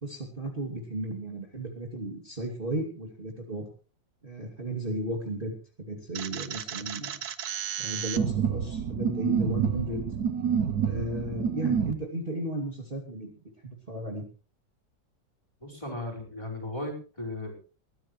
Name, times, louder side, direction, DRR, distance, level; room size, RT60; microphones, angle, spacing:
voice 1, 0.0-3.7 4.2-7.2 7.8-10.0 10.8-13.3 13.6-14.2, right 1 dB, 30° right, 0 dB, 2.8 m, -34 dB
sound 1, 6.1-11.9, right 7 dB, 60° right, 1.4 m, -29 dB
voice 2, 15.6-17.6, left 1 dB, 15° left, -1 dB, 5.1 m, -36 dB
21.0 x 15.5 x 3.2 m, 0.38 s
omnidirectional pair, 2.0 m